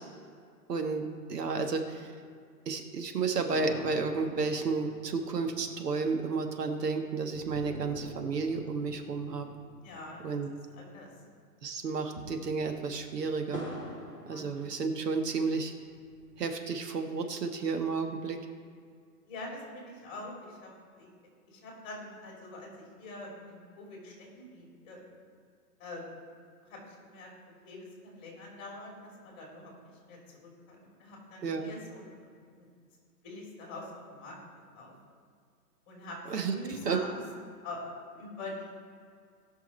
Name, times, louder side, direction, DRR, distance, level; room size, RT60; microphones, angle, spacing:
voice 1, 0.7-2.1 2.6-9.5 10.2-10.5 11.6-13.6 14.3-15.7 16.4-18.4 31.4-31.7 36.3-36.5 36.8-37.2, right 4 dB, 85° right, 5 dB, 1.5 m, -32 dB
sound 1, 3.5-11.1 11.4-11.5 11.9-15.3 15.8-16.8, left 1 dB, 15° right, 0.5 m, -46 dB
voice 2, 9.8-10.4 10.8-11.1 14.2-14.4 19.3-20.7 21.0-21.1 21.5-25.0 25.8-26.1 26.6-27.3 27.6-32.1 32.5-32.7 33.2-34.4 34.7-35.0 35.9-37.2 37.6-38.7, left 2 dB, 25° left, -2 dB, 3.1 m, -44 dB
18.5 x 6.3 x 4.3 m, 2.1 s
hypercardioid pair, 165°, 47 cm